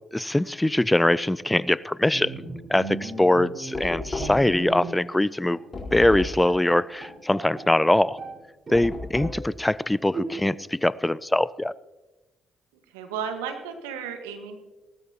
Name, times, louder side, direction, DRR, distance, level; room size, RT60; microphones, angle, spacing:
voice 1, 0.1-5.6 5.9-8.2 8.7-11.7, left 1 dB, 10° left, 20 dB, 0.4 m, -22 dB
Bowed string instrument, 2.1-5.2 5.5-5.7 6.1-6.2 6.5-8.4 8.7-9.5 10.1-10.7, right 2 dB, 40° right, 4.4 m, -37 dB
Knock, 3.7-4.6 5.7-6.5 8.7-9.5, left 2 dB, 35° left, 4.2 m, -33 dB
voice 2, 12.7-14.6, right 7 dB, 85° right, 6 dB, 1.4 m, -34 dB
18.0 x 13.5 x 2.9 m, 1.1 s
hypercardioid pair, 45°, 0 cm